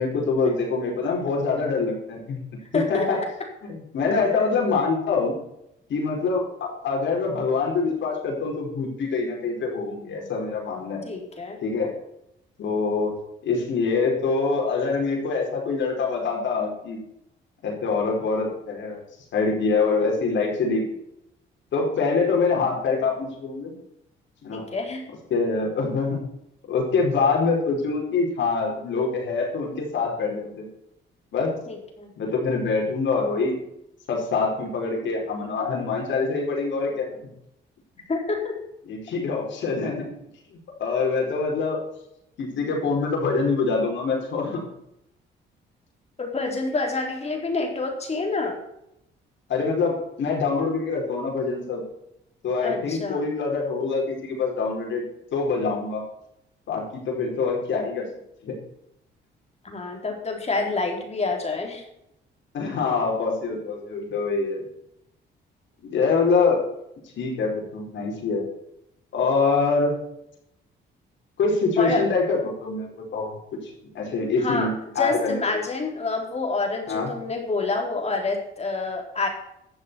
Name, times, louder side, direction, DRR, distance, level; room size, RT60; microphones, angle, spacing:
voice 1, 0.0-2.4 2.7-3.2 3.6-5.3 5.9-11.0 11.6-11.9 12.6-13.1 13.4-17.0 17.6-19.0 19.3-20.9 21.7-23.7 24.4-24.6 25.3-26.2 26.6-30.7 31.3-31.5 32.2-33.6 34.1-37.1 38.9-40.0 40.5-41.8 42.4-44.6 49.5-51.8 52.4-55.0 55.3-56.0 56.7-58.0 58.4-58.6 62.5-64.6 65.8-66.6 67.2-68.4 69.1-70.0 71.4-73.4 73.6-75.6 76.9-77.1, left 4 dB, 70° left, -1 dB, 4.8 m, -25 dB
voice 2, 2.7-3.1 11.1-11.6 24.5-25.0 31.7-32.1 38.1-38.6 46.2-48.6 52.6-53.2 59.6-61.8 71.8-72.0 74.4-74.7 75.0-79.3, left 3 dB, 30° left, 2 dB, 3.9 m, -27 dB
12.0 x 7.3 x 7.0 m, 0.79 s
cardioid pair, 90°, 20 cm